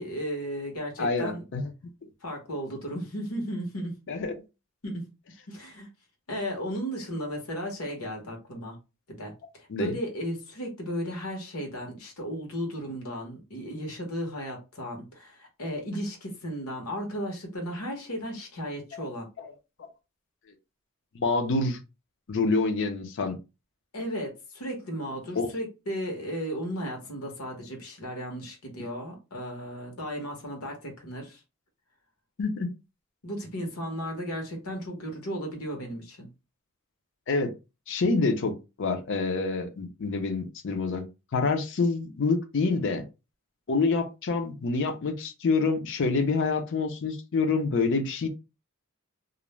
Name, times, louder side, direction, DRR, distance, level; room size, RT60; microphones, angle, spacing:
voice 1, 0.0-1.4 2.2-3.9 4.8-5.0 5.5-5.9 6.3-8.8 9.1-9.3 9.6-19.3 23.9-31.4 33.2-36.3, equal, 85° left, 1.0 m, -35 dB
voice 2, 1.0-1.7 4.1-4.4 9.7-9.9 19.4-19.5 21.1-21.8 22.3-23.4 25.4-25.5 32.4-32.7 37.3-37.5 37.9-41.0 41.3-43.0 43.7-48.3, left 3 dB, 60° left, 0.5 m, -27 dB
2.4 x 2.0 x 3.1 m
head